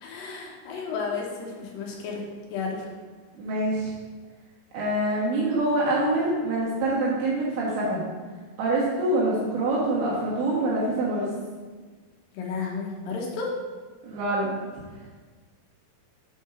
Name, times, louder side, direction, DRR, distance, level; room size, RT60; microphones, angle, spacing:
voice 1, 0.0-2.2 2.5-2.8 12.3-13.5, left 5 dB, 70° left, -1 dB, 2.7 m, -32 dB
voice 2, 3.4-3.9 4.7-8.0 8.6-11.3 14.0-14.5, right 2 dB, 75° right, -6 dB, 3.3 m, -25 dB
7.4 x 4.4 x 5.7 m, 1.4 s
omnidirectional pair, 4.6 m